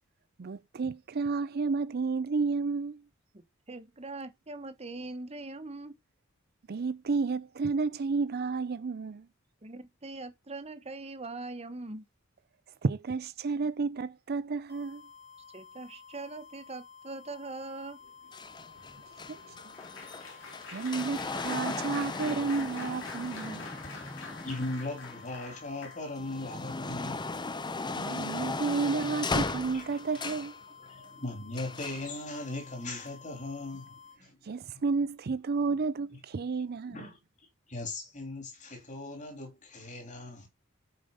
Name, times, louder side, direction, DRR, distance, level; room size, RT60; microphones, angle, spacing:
voice 1, 0.4-3.0 6.7-9.3 12.8-15.0 19.3-19.4 20.7-23.7 28.0-30.5 34.4-37.1, right 4 dB, 50° right, 0.5 m, -31 dB
voice 2, 3.3-6.0 9.6-12.0 15.5-18.0, right 2 dB, 30° right, 1.2 m, -42 dB
sound 1, 14.7-34.2, left 6 dB, 55° left, 3.6 m, -53 dB
Applause, 18.0-26.3 27.0-27.2 27.5-27.7, left 4 dB, 75° left, 3.4 m, -47 dB
sound 2, 18.3-25.5 26.0-30.6 31.5-32.1 33.0-33.1, left 3 dB, 20° left, 0.6 m, -37 dB
voice 3, 24.4-27.5 29.7-30.3 30.8-34.4 34.7-34.8 36.9-37.2 37.7-40.5, left 2 dB, 40° left, 3.2 m, -39 dB
8.9 x 5.1 x 5.5 m
head